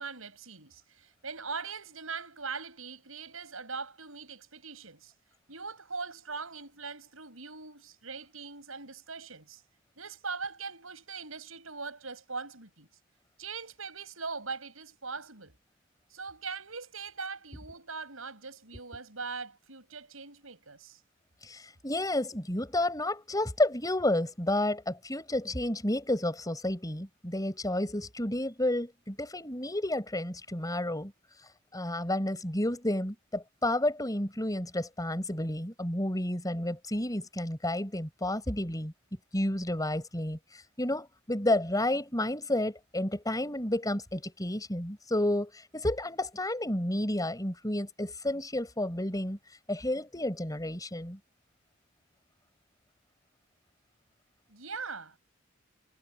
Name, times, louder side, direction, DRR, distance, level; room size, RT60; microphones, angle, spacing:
voice 1, 0.0-5.1 5.5-9.6 10.0-12.9 13.4-15.5 16.1-21.0 54.5-55.2, right 4 dB, 85° right, 7.1 m, -41 dB
voice 2, 21.4-31.1 31.7-38.9 39.3-40.4 40.8-49.4 49.7-51.2, left 1 dB, 20° left, 6.3 m, -31 dB
head